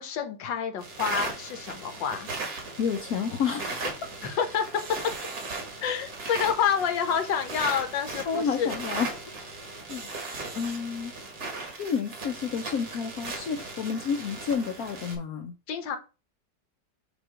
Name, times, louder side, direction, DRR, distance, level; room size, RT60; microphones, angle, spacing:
voice 1, 0.0-2.3 4.2-4.6 4.9-5.0 5.8-8.7 15.7-16.0, left 7 dB, 85° left, 1.7 m, -28 dB
sound 1, 0.8-15.2, right 3 dB, 55° right, 2.1 m, -37 dB
voice 2, 2.8-3.9 8.3-9.4 9.9-10.1 10.5-11.1 11.8-15.5, left 6 dB, 65° left, 1.1 m, -30 dB
7.1 x 3.0 x 4.8 m
omnidirectional pair, 2.0 m